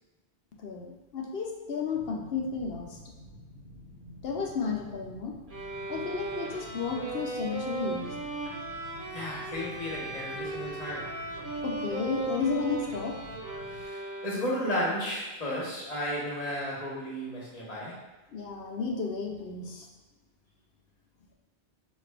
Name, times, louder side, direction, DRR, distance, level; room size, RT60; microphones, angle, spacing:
voice 1, 0.6-3.0 4.2-5.4 5.9-8.2 11.6-13.2 18.3-19.9, left 5 dB, 70° left, 1 dB, 0.8 m, -33 dB
sound 1, 1.9-13.8, left 1 dB, 90° right, 1.2 m, -50 dB
sound 2, 5.5-14.7, right 3 dB, 55° right, 1.1 m, -37 dB
voice 2, 9.1-11.1 13.7-18.0, equal, 40° left, -6 dB, 1.3 m, -33 dB
5.2 x 2.4 x 3.3 m, 1.1 s
omnidirectional pair, 1.1 m